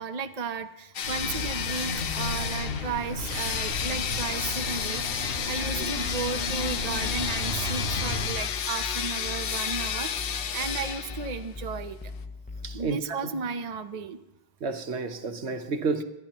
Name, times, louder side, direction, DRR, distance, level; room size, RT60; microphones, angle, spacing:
voice 1, 0.0-5.0 5.5-12.0 12.7-14.2, right 5 dB, 40° right, 0.8 m, -34 dB
sound 1, 0.9-11.5, left 8 dB, 65° left, 0.8 m, -32 dB
sound 2, 1.0-8.3, left 2 dB, 80° left, 4.8 m, -34 dB
sound 3, 5.6-12.9, left 3 dB, 15° left, 0.3 m, -40 dB
voice 2, 12.6-13.3 14.6-16.0, right 4 dB, 90° right, 1.3 m, -31 dB
27.5 x 12.5 x 3.0 m
omnidirectional pair, 1.1 m